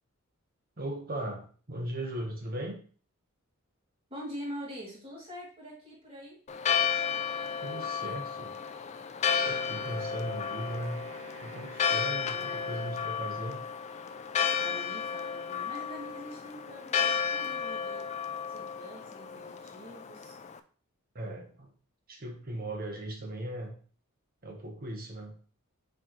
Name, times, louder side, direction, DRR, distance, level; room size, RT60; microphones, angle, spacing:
voice 1, 0.8-2.8 7.6-8.6 9.4-11.0 11.4-13.6 21.1-21.7 22.1-23.7 24.4-25.3, right 1 dB, 40° right, 2 dB, 1.2 m, -38 dB
voice 2, 4.1-6.4 12.2-12.7 14.5-18.2 18.5-20.4, equal, 25° right, -6 dB, 2.9 m, -44 dB
Church bell, 6.5-20.6, left 7 dB, 30° left, 0.3 m, -33 dB
Wind instrument woodwind instrument, 9.3-13.5, right 2 dB, 75° right, 1.6 m, -50 dB
7.2 x 4.5 x 3.1 m, 0.41 s
head